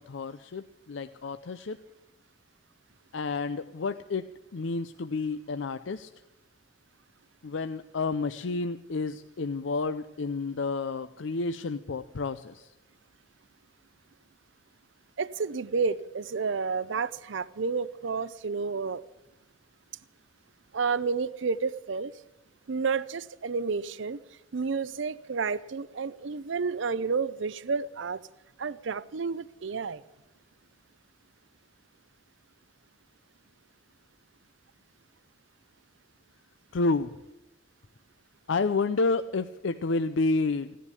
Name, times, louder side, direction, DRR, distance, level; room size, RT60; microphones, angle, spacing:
voice 1, 0.1-1.8 3.1-6.1 7.4-12.7 36.7-37.1 38.5-40.8, left 3 dB, 70° left, 11 dB, 0.5 m, -30 dB
voice 2, 15.2-19.0 20.7-22.1 22.7-24.2 24.5-28.2 28.6-30.0, right 5 dB, 70° right, 18 dB, 0.6 m, -30 dB
16.5 x 10.0 x 8.3 m, 0.97 s
head